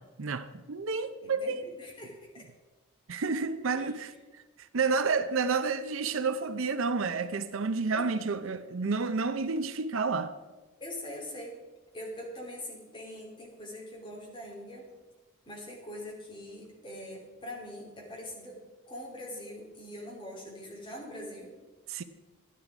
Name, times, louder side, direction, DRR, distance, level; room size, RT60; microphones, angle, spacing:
voice 1, 0.2-1.7 3.1-4.1 4.6-10.3 21.9-22.0, right 4 dB, 65° right, 0.6 m, -30 dB
voice 2, 1.2-2.4 3.7-4.0 7.9-8.1 10.8-11.6 11.9-14.9 15.4-18.6 18.9-21.6, left 1 dB, 20° left, 3.0 m, -43 dB
12.0 x 10.0 x 4.9 m
head